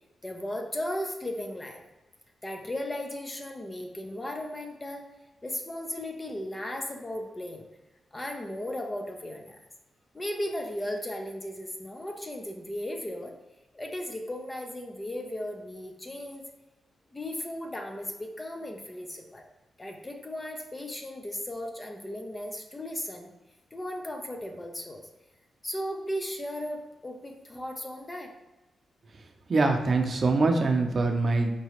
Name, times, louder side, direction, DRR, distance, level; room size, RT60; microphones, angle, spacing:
voice 1, 0.2-1.8 2.4-5.1 5.4-7.6 8.1-9.6 10.1-13.4 13.7-16.4 17.1-19.4 19.8-23.3 23.7-25.1 25.6-28.3, left 1 dB, 20° left, 3 dB, 0.5 m, -36 dB
voice 2, 29.5-31.5, right 3 dB, 45° right, 4 dB, 0.6 m, -24 dB
4.6 x 3.0 x 2.9 m, 1.1 s
cardioid pair, 100°, 0 cm